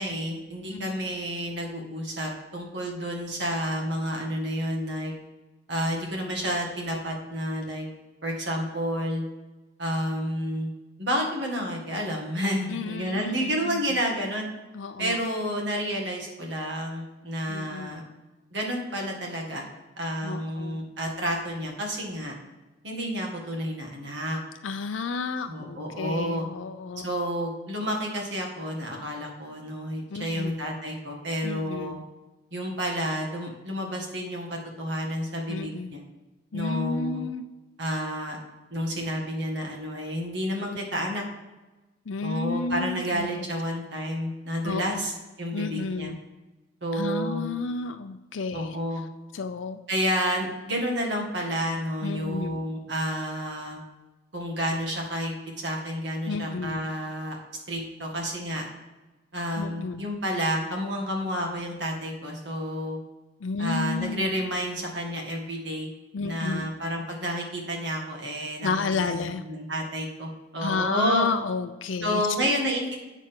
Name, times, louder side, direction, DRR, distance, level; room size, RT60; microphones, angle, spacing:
voice 1, 0.0-5.1 5.7-7.9 8.2-9.2 9.8-10.7 11.0-14.5 15.0-18.0 18.5-19.7 20.0-22.4 22.8-24.4 25.5-26.5 27.0-32.0 32.5-36.0 36.5-37.2 37.8-38.4 38.7-41.2 42.2-45.1 45.4-46.1 46.8-47.4 48.5-49.0 49.9-53.8 54.3-57.4 57.7-58.6 59.3-63.0 63.6-65.9 66.2-68.7 69.1-69.2 69.4-71.3 72.0-73.0, equal, 60° right, 0 dB, 2.1 m, -30 dB
voice 2, 0.7-1.1 12.7-13.8 14.7-15.2 17.5-18.0 20.2-20.8 24.6-27.1 30.1-30.6 31.4-32.0 35.5-36.0 36.5-37.4 40.6-40.8 42.1-43.3 44.6-45.0 45.5-46.2 46.9-48.8 49.3-49.8 52.0-52.6 56.3-56.8 59.6-60.0 63.4-64.2 66.1-66.7 68.6-69.4 70.6-72.5, left 4 dB, 85° left, 8 dB, 0.5 m, -32 dB
8.1 x 6.5 x 3.8 m, 1.1 s
head